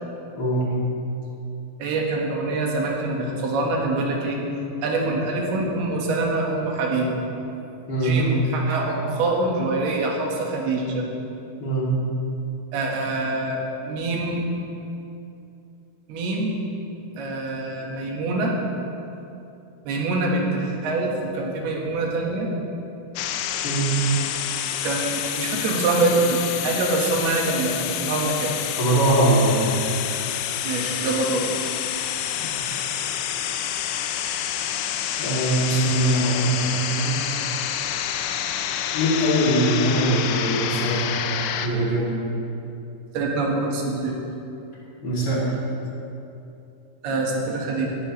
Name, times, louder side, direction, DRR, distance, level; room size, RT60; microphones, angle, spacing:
voice 1, 0.4-0.7 7.9-8.2 11.6-11.9 23.6-24.0 28.8-29.8 32.3-32.9 35.2-37.2 38.9-41.1 41.6-42.1 45.0-45.4, right 1 dB, 30° left, -6 dB, 2.9 m, -22 dB
voice 2, 1.8-4.4 4.8-7.2 8.0-11.1 12.7-14.5 16.1-16.6 17.2-18.6 19.9-22.5 24.8-28.5 30.6-31.5 43.1-44.2 47.0-48.0, right 2 dB, 85° right, -1 dB, 3.6 m, -25 dB
sound 1, 23.2-41.7, left 10 dB, 85° left, 2.6 m, -28 dB
17.5 x 12.5 x 3.3 m, 2.8 s
omnidirectional pair, 4.5 m